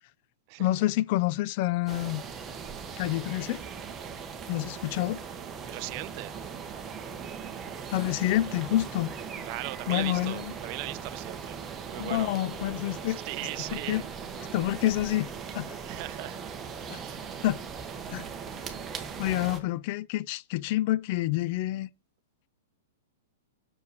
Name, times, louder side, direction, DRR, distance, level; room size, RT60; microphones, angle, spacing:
voice 1, 0.6-2.2 3.0-3.6 4.5-5.2 7.9-9.1 9.9-10.5 12.0-13.2 13.7-14.0 14.5-15.3 15.5-15.8 16.9-17.0 17.4-17.6 18.1-18.3 19.2-21.9, left 15 dB, 45° left, 0.4 m, -28 dB
sound 1, 1.9-19.6, right 6 dB, 20° right, 1.0 m, -39 dB
voice 2, 5.7-6.3 9.4-11.6 11.9-12.3 13.1-14.0 15.8-17.2, right 21 dB, 40° right, 0.4 m, -38 dB
6.3 x 5.5 x 6.6 m
hypercardioid pair, 150°, 0 cm